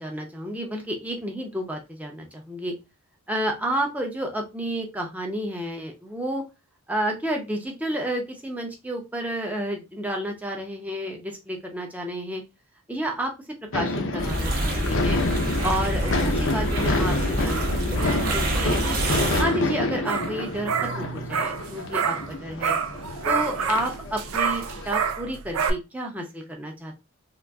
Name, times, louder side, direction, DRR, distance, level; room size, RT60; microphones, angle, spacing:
voice 1, 0.0-2.7 3.3-6.4 6.9-12.4 12.9-13.3 13.7-15.2 15.6-19.0 19.4-22.7 23.2-26.9, right 1 dB, 5° right, 2 dB, 0.6 m, -30 dB
sound 1, 13.7-25.1, left 2 dB, 60° left, 0.6 m, -29 dB
sound 2, 14.2-19.4, equal, 40° right, 0.7 m, -26 dB
sound 3, 15.3-22.3 22.6-25.7, right 6 dB, 70° right, 0.4 m, -30 dB
3.8 x 2.5 x 2.3 m, 0.25 s
head